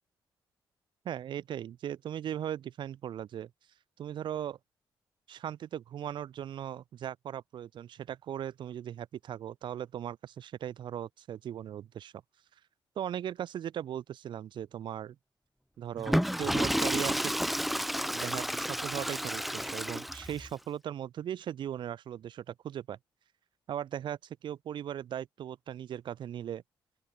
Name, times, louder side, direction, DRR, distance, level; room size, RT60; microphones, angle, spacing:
voice 1, 1.0-3.5 4.0-4.6 5.3-12.1 13.0-15.2 15.8-17.3 18.1-23.0 23.7-26.6, right 10 dB, 70° right, 4.4 m, -38 dB
Water / Toilet flush, 16.0-20.5, equal, ahead, 3.7 m, -31 dB
open air
cardioid pair, 145°, 8 cm